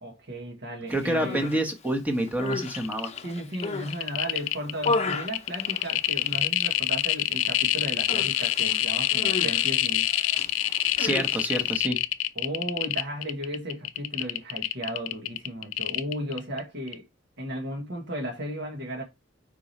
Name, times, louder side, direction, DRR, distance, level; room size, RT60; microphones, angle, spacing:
voice 1, 0.0-1.5 3.2-10.1 12.3-17.0 17.4-19.0, right 1 dB, 60° right, 1.4 m, -35 dB
voice 2, 0.9-3.1 11.0-12.0, right 1 dB, 10° right, 1.1 m, -28 dB
Human voice, 1.0-1.6 2.2-4.0 4.4-6.4 6.7-7.1 7.4-7.6 8.1-11.8, left 3 dB, 35° left, 0.7 m, -34 dB
sound 1, 2.5-2.6 2.8-3.2 3.5-16.6 16.9-17.0, left 13 dB, 75° left, 0.5 m, -26 dB
4.9 x 4.7 x 4.1 m
head